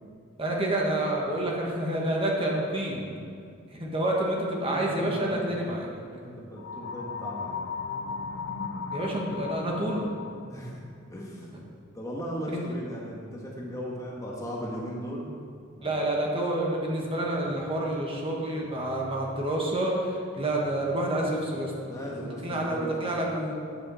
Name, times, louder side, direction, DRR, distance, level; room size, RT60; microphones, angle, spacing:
voice 1, 0.4-3.1 3.7-5.9 8.9-10.1 12.5-12.6 15.8-21.7 22.2-23.5, right 1 dB, 25° right, -2 dB, 1.6 m, -28 dB
voice 2, 4.7-7.7 10.5-10.8 11.1-11.6 11.9-15.4 15.7-16.0 21.8-23.4, equal, 15° left, -3 dB, 1.5 m, -38 dB
sound 1, 6.6-10.5, left 4 dB, 60° left, 0.7 m, -36 dB
14.0 x 8.7 x 4.3 m, 2.2 s
head